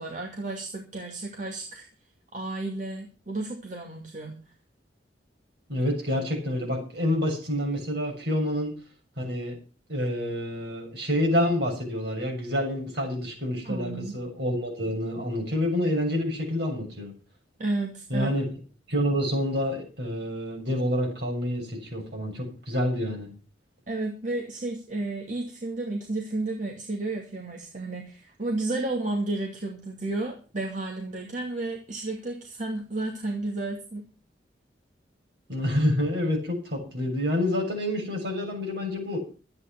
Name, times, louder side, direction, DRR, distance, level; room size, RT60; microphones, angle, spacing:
voice 1, 0.0-1.9 2.3-4.3 13.6-14.2 17.6-18.4 23.9-34.0, right 2 dB, 45° right, 0 dB, 2.6 m, -32 dB
voice 2, 5.7-8.7 9.2-9.6 9.9-17.1 18.1-18.4 18.9-23.3 35.5-39.2, left 1 dB, 65° right, 1 dB, 7.1 m, -28 dB
13.5 x 9.6 x 6.0 m, 0.36 s
head